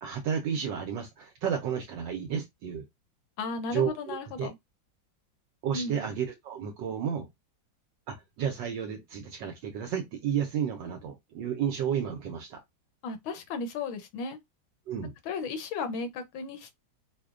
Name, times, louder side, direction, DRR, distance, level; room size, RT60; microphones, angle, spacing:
voice 1, 0.0-2.8 3.7-4.5 5.6-7.3 8.1-12.6 14.9-15.1, right 8 dB, 70° right, 1.2 m, -32 dB
voice 2, 3.4-4.5 5.7-6.1 13.0-14.4 15.2-16.7, left 4 dB, 85° left, 1.5 m, -35 dB
4.9 x 2.2 x 2.4 m
omnidirectional pair, 2.1 m